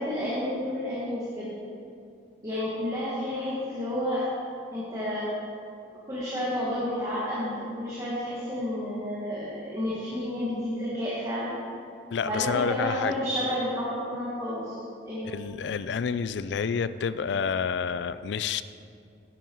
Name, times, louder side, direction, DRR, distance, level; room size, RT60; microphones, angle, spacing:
voice 1, 0.0-1.5 2.4-4.3 4.7-5.3 6.1-11.6 12.2-15.3, left 1 dB, 20° right, -9 dB, 1.8 m, -31 dB
voice 2, 12.1-13.2 15.2-18.6, left 6 dB, 75° left, 14 dB, 0.4 m, -29 dB
10.5 x 9.3 x 4.6 m, 2.4 s
head